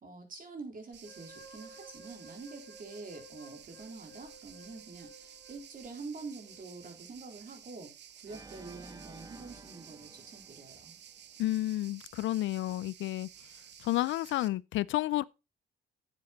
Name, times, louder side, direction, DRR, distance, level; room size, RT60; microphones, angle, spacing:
voice 1, 0.0-7.9 8.2-11.0, right 3 dB, 45° right, 3.8 m, -46 dB
sound 1, 0.9-14.5, right 9 dB, 60° right, 0.9 m, -54 dB
sound 2, 1.0-7.0, right 1 dB, 10° left, 5.8 m, -55 dB
Organ, 8.3-11.4, right 3 dB, 20° right, 1.2 m, -52 dB
voice 2, 11.4-13.3 13.8-15.2, left 15 dB, 75° left, 0.4 m, -31 dB
9.4 x 7.5 x 4.0 m
cardioid pair, 90°, 20 cm